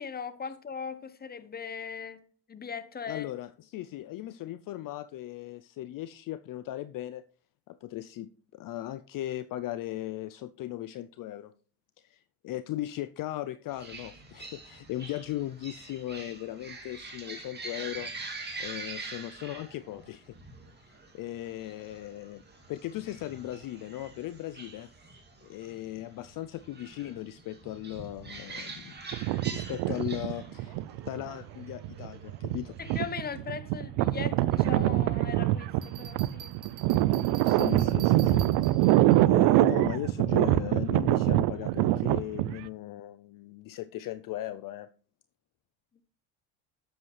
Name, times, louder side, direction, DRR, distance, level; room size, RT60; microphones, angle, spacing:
voice 1, 0.0-2.2 2.5-3.3 32.8-36.5, left 6 dB, 20° left, 0.9 m, -39 dB
voice 2, 3.1-7.2 7.7-11.5 12.0-18.1 18.6-20.4 20.8-22.4 22.7-24.9 25.4-28.9 29.5-30.8 31.1-32.8 37.4-38.8 39.2-44.9, left 14 dB, 50° left, 0.5 m, -38 dB
sound 1, 13.7-33.4, right 3 dB, 25° right, 2.5 m, -45 dB
sound 2, 29.1-31.3 31.8-42.7, right 16 dB, 75° right, 0.5 m, -25 dB
Bell, 35.8-39.2, right 8 dB, 45° right, 1.7 m, -47 dB
11.0 x 7.9 x 3.3 m
supercardioid pair, 85°, 42 cm